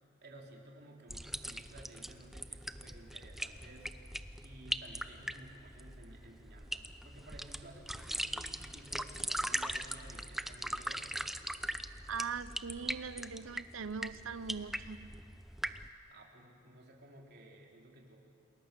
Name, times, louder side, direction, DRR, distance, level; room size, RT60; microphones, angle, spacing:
voice 1, 0.2-3.9 4.4-11.1 16.1-18.2, right 1 dB, 55° right, -1 dB, 3.4 m, -55 dB
sound 1, 1.1-15.9, equal, ahead, 0.5 m, -40 dB
voice 2, 12.1-15.1, right 5 dB, 80° right, 14 dB, 0.7 m, -41 dB
28.5 x 20.5 x 6.7 m, 2.5 s
head